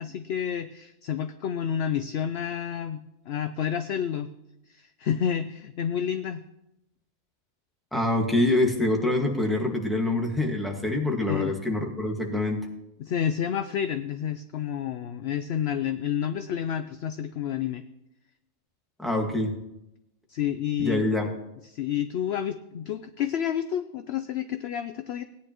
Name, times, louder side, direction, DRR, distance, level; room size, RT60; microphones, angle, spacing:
voice 1, 0.0-4.3 4.7-6.4 11.3-11.5 13.0-17.8 20.3-21.1 21.6-25.2, left 9 dB, 65° left, 10 dB, 0.6 m, -29 dB
voice 2, 7.9-12.7 19.0-19.5 20.8-21.3, left 2 dB, ahead, 0 dB, 1.6 m, -25 dB
17.0 x 10.0 x 3.0 m, 0.87 s
omnidirectional pair, 1.5 m